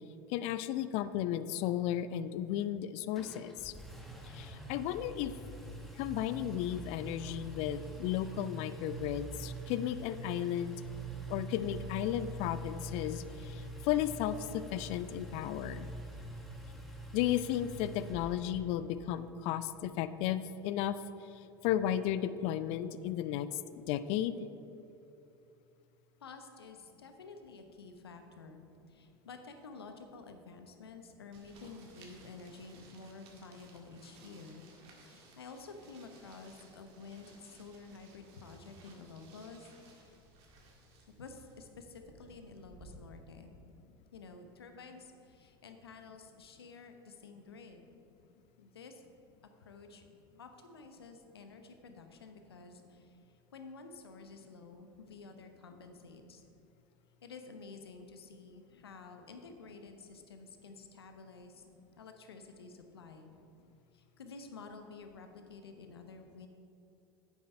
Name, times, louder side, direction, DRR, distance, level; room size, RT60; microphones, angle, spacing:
voice 1, 0.3-3.7 4.2-5.3 6.0-10.8 11.3-15.9 17.1-21.0 21.6-24.3, left 11 dB, 55° left, 14 dB, 0.4 m, -34 dB
Engine, 3.1-18.9, right 1 dB, ahead, 1.3 m, -45 dB
voice 2, 26.2-34.6 34.9-40.1 41.2-43.5 44.1-48.0 48.6-49.0 49.6-50.0 50.4-56.4 57.2-61.6 62.0-63.3 63.9-66.5, left 4 dB, 80° left, 6 dB, 0.8 m, -51 dB
sound 1, 31.3-43.0, right 3 dB, 50° right, 1.8 m, -59 dB
9.4 x 7.2 x 4.4 m, 2.9 s
figure-of-eight pair, 75°, 13 cm